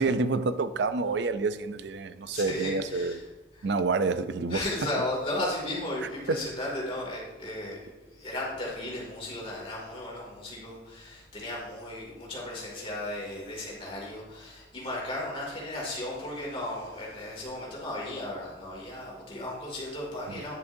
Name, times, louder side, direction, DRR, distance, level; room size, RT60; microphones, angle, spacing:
voice 1, 0.0-3.2 3.6-4.6 6.3-6.4, right 3 dB, 70° right, 0.4 m, -28 dB
voice 2, 2.3-3.2 3.6-3.7 4.5-20.6, left 1 dB, 30° left, 2.4 m, -35 dB
9.5 x 7.8 x 2.7 m
head